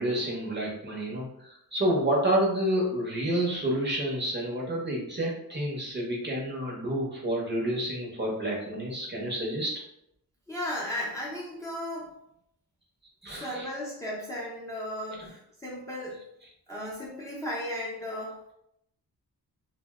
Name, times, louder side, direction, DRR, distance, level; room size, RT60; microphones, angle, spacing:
voice 1, 0.0-9.7 13.2-13.7 15.2-15.3, right 1 dB, 30° right, -3 dB, 0.7 m, -29 dB
voice 2, 10.5-12.1 13.3-16.2 16.7-18.4, left 1 dB, 10° left, -6 dB, 0.5 m, -35 dB
2.6 x 2.1 x 3.5 m, 0.77 s
wide cardioid pair, 150°, 37 cm